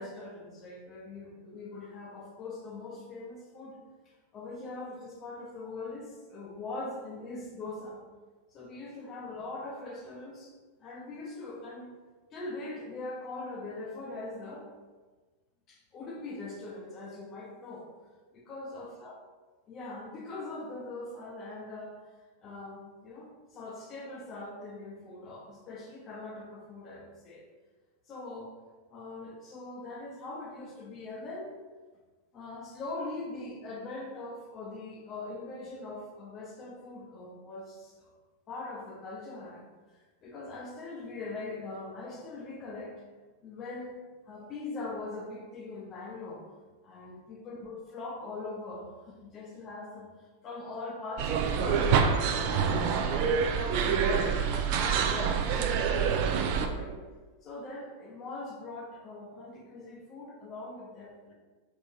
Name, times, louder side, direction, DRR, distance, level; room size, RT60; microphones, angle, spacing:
voice 1, 0.0-3.8 4.0-8.0 8.5-11.9 12.3-14.7 15.7-17.9 18.3-19.1 19.7-22.1 22.4-27.5 28.1-28.5 28.9-31.5 32.3-38.1 38.5-39.6 39.9-43.0 43.4-46.5 46.8-52.8 53.2-57.0 57.4-61.3, left 2 dB, 30° left, -2 dB, 0.6 m, -41 dB
sound 1, 51.2-56.7, right 6 dB, 45° right, 0.3 m, -26 dB
3.6 x 3.0 x 2.7 m, 1.3 s
figure-of-eight pair, 90°, 0 cm